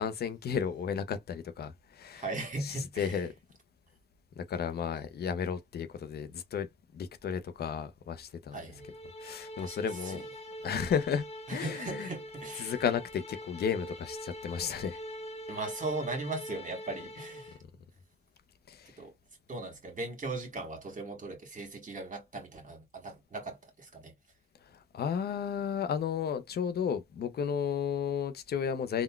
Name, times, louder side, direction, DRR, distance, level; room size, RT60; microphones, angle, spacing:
voice 1, 0.0-2.2 2.6-3.3 4.4-8.6 9.2-10.3 10.6-12.1 12.6-15.0 18.7-19.0 24.6-29.0, left 7 dB, 90° left, 0.5 m, -33 dB
voice 2, 2.1-3.2 8.5-8.9 9.6-9.7 10.0-10.2 11.5-12.7 15.5-17.5 19.0-19.1 19.5-24.2, right 2 dB, 55° right, 1.4 m, -38 dB
sound 1, 8.8-17.6, equal, 40° left, 0.9 m, -44 dB
3.7 x 2.2 x 2.3 m
cardioid pair, 65°, 16 cm